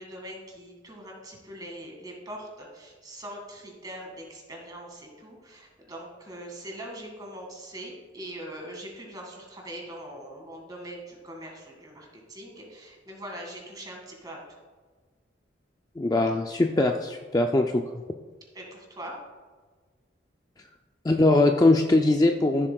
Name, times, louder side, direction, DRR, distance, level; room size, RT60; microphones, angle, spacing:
voice 1, 0.0-14.4 18.5-19.2, right 1 dB, 20° right, 0 dB, 1.9 m, -42 dB
voice 2, 16.0-17.8 21.0-22.7, left 2 dB, 20° left, 3 dB, 0.3 m, -21 dB
14.5 x 7.5 x 2.3 m, 1.4 s
head